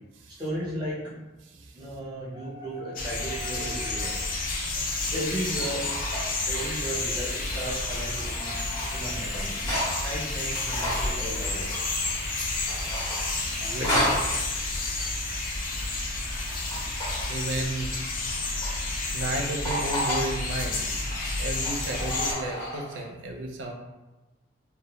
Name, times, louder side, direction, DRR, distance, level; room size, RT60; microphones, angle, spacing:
voice 1, 0.3-1.1 1.7-4.4 5.1-5.8 6.5-11.7 13.8-14.2, equal, 20° right, -7 dB, 0.7 m, -35 dB
voice 2, 1.4-2.0 13.6-14.0 17.3-17.9 18.3-23.7, right 2 dB, 80° right, 2 dB, 0.4 m, -34 dB
sound 1, 3.0-22.3, left 2 dB, 45° left, 0.3 m, -31 dB
sound 2, 3.7-3.9 5.1-6.9 7.4-10.1 10.4-12.3 12.6-14.3 16.3-17.4 18.2-18.8 19.2-19.3 19.7-20.3 20.8-23.0, equal, 15° left, 0.7 m, -33 dB
Water tap faucet / Sink (filling or washing), 4.6-19.4, left 1 dB, 70° left, 1.3 m, -47 dB
2.1 x 2.1 x 2.9 m, 1.1 s
head